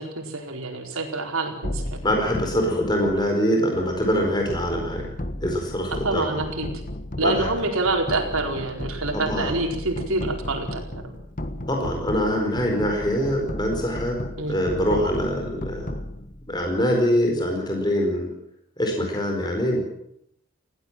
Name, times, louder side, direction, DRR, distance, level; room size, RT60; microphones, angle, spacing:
voice 1, 0.0-2.0 5.9-6.7 7.2-10.8 14.4-14.6, right 2 dB, 85° right, 2 dB, 4.6 m, -26 dB
sound 1, 1.6-16.9, left 1 dB, 40° left, 1.6 m, -34 dB
voice 2, 2.0-5.1 5.4-6.4 7.2-7.5 9.1-9.5 11.7-14.2 14.5-15.9 16.5-18.3 18.8-19.8, equal, 20° left, 1 dB, 4.6 m, -24 dB
21.0 x 16.5 x 7.6 m, 0.72 s
head